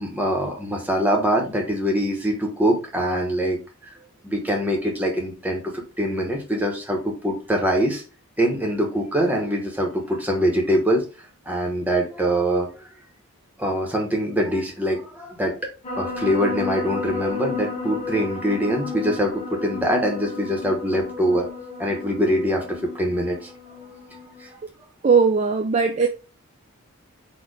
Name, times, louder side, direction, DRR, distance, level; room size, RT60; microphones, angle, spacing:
voice 1, 0.0-3.6 4.2-8.0 8.4-11.0 11.5-12.9 13.6-15.6 16.0-21.5 21.8-23.5 24.4-24.5, equal, 5° right, 1.0 m, -23 dB
sound 1, 15.8-24.5, left 4 dB, 30° left, 1.6 m, -33 dB
voice 2, 25.0-26.1, right 5 dB, 30° right, 0.3 m, -18 dB
4.4 x 2.5 x 4.6 m
head